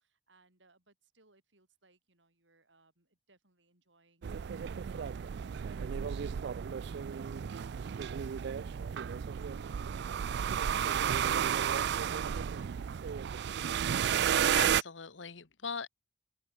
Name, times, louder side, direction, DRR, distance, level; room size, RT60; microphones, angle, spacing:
voice 1, 0.0-13.1, right 2 dB, 80° right, 8.0 m, -69 dB
sound 1, 4.2-14.8, right 8 dB, 65° right, 0.4 m, -32 dB
voice 2, 14.3-15.9, left 5 dB, 85° left, 1.4 m, -40 dB
open air
head